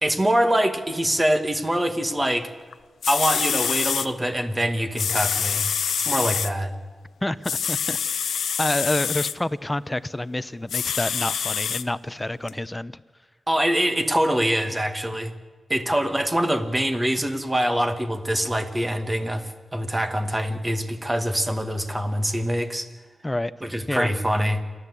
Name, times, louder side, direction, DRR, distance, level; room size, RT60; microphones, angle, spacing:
voice 1, 0.0-2.5 3.1-5.7 6.0-6.7 13.5-15.3 15.7-22.9 23.6-24.6, equal, 20° right, 8 dB, 2.1 m, -24 dB
sound 1, 2.7-2.8 3.0-4.1 5.0-6.5 7.4-9.3 10.7-11.8 12.5-12.6, left 7 dB, 90° left, 0.7 m, -26 dB
voice 2, 7.2-8.0 8.6-13.0 23.2-23.5 23.9-24.1, left 1 dB, 15° left, 15 dB, 0.8 m, -28 dB
28.5 x 12.0 x 8.4 m, 1.4 s
cardioid pair, 65°, 0 cm